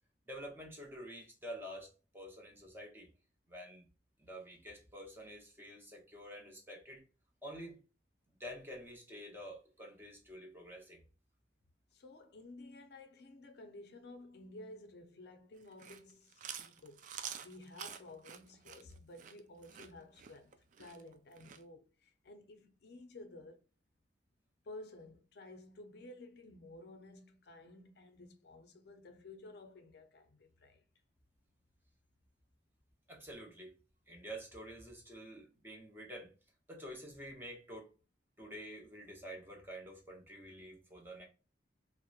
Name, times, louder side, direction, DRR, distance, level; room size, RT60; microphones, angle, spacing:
voice 1, 0.3-3.1 3.5-3.9 4.2-7.1 7.4-7.8 8.4-11.0 33.1-33.8 34.1-36.3 36.7-37.9 38.4-41.2, equal, 10° right, 0.7 m, -48 dB
voice 2, 11.9-17.1 17.4-23.6 24.6-30.8, left 2 dB, 60° left, 0.5 m, -53 dB
Chewing mastication, 15.6-21.6, right 8 dB, 45° right, 0.3 m, -48 dB
2.8 x 2.0 x 2.3 m
head